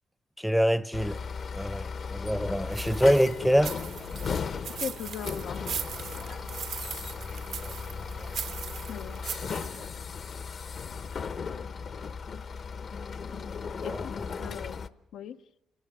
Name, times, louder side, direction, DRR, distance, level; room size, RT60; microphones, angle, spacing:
voice 1, 0.4-1.2 1.5-3.8 7.2-7.9 8.2-8.4 10.3-10.5 13.7-14.0 14.4-14.5, equal, ahead, 0.7 m, -26 dB
sound 1, 0.9-14.9, left 5 dB, 50° left, 0.9 m, -36 dB
sound 2, 2.7-9.9, right 8 dB, 70° right, 1.2 m, -39 dB
voice 2, 4.8-5.6 8.9-9.2 13.8-14.1 14.4-15.4, left 9 dB, 80° left, 0.7 m, -39 dB
29.5 x 19.0 x 6.0 m
cardioid pair, 90°, 0 cm